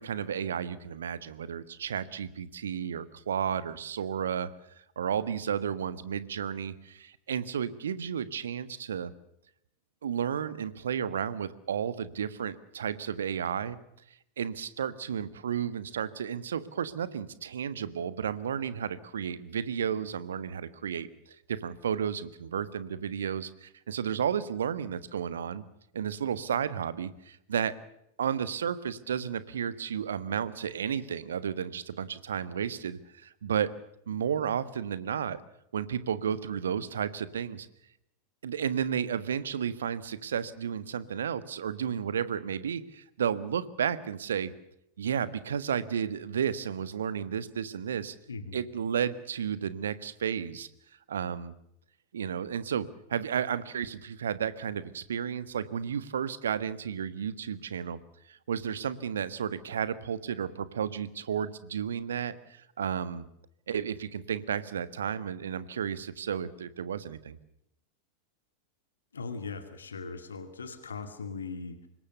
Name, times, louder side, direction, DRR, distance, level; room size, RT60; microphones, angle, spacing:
voice 1, 0.0-4.5 4.9-9.1 10.0-13.8 14.4-21.1 21.5-25.6 25.9-27.7 28.2-33.7 34.1-35.4 35.7-37.7 38.4-44.5 45.0-48.1 48.5-50.7 51.1-51.5 52.1-58.0 58.3-63.2 63.7-67.4, right 8 dB, 65° right, 15 dB, 1.5 m, -32 dB
voice 2, 48.3-48.6 69.1-71.9, left 4 dB, 70° left, 10 dB, 2.3 m, -39 dB
26.0 x 22.0 x 6.7 m, 0.77 s
figure-of-eight pair, 90°, 0 cm